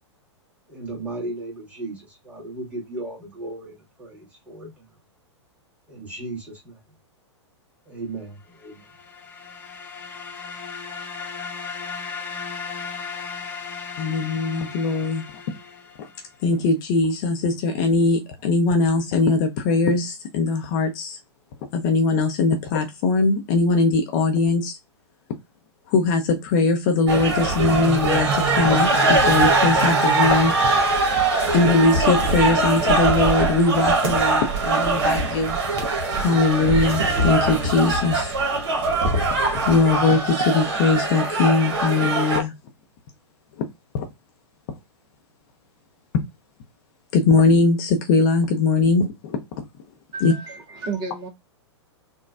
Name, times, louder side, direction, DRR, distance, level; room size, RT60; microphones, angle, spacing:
voice 1, 0.7-4.9 5.9-6.8 7.8-8.8, right 2 dB, 10° right, 1.8 m, -36 dB
sound 1, 8.6-16.3, left 5 dB, 10° left, 0.8 m, -36 dB
voice 2, 14.0-15.2 16.4-21.2 21.7-24.8 25.9-30.5 31.5-35.6 36.2-38.3 39.5-42.5 43.9-44.1 47.1-49.4 50.2-50.3, left 3 dB, 40° left, 0.6 m, -20 dB
sound 2, 27.1-42.4, right 3 dB, 55° right, 1.2 m, -21 dB
sound 3, 30.9-34.0 34.3-34.5 35.8-36.3 38.1-38.8, right 3 dB, 75° right, 0.7 m, -37 dB
voice 3, 50.1-51.3, right 4 dB, 30° right, 0.9 m, -32 dB
3.8 x 2.3 x 2.4 m
figure-of-eight pair, 105°, 15 cm